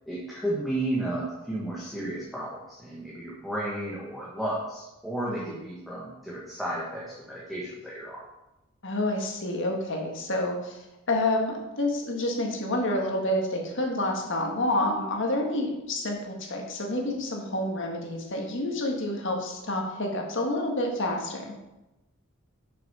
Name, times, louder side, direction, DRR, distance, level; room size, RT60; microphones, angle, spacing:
voice 1, 0.1-8.2, right 1 dB, ahead, -7 dB, 1.5 m, -33 dB
voice 2, 5.2-5.6 8.8-10.8 11.1-21.5, left 1 dB, 55° left, 1 dB, 1.7 m, -28 dB
7.2 x 6.1 x 5.5 m, 0.98 s
head